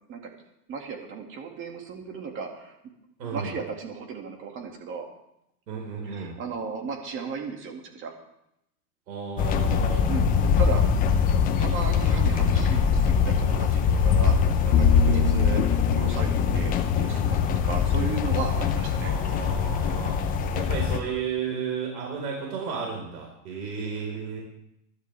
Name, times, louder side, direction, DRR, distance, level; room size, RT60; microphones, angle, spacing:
voice 1, 0.7-2.8 3.3-5.1 6.0-8.1 9.9-10.8 11.3-17.4 17.6-19.1 23.5-23.6, right 5 dB, 25° right, 3 dB, 2.2 m, -35 dB
voice 2, 3.2-3.5 5.7-6.4 9.1-10.1 15.0-15.4 19.0-20.2 20.5-24.4, right 6 dB, 80° right, -1 dB, 4.6 m, -33 dB
sound 1, 9.4-21.0, left 6 dB, 15° left, 0.7 m, -23 dB
Bowed string instrument, 14.7-18.2, left 6 dB, 55° left, 1.9 m, -27 dB
20.5 x 13.0 x 3.5 m, 0.80 s
supercardioid pair, 145°, 50 cm